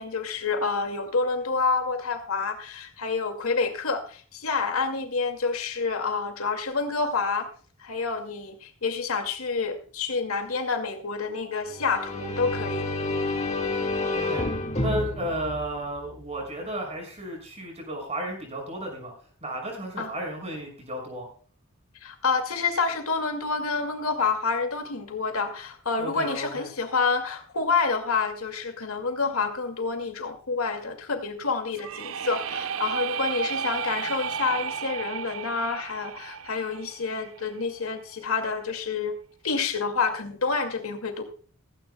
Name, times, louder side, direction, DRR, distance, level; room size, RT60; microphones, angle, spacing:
voice 1, 0.0-7.5 7.8-12.9 20.0-20.1 22.0-39.2 39.4-41.2, left 4 dB, 80° left, 6 dB, 2.2 m, -28 dB
sound 1, 11.7-16.4, left 2 dB, 30° left, 2.0 m, -30 dB
voice 2, 14.1-14.5 14.8-19.1 19.4-21.3 26.0-26.7, right 1 dB, 30° right, 2 dB, 6.1 m, -33 dB
sound 2, 31.7-37.6, right 7 dB, 65° right, 0.5 m, -33 dB
16.5 x 16.0 x 2.2 m, 0.42 s
head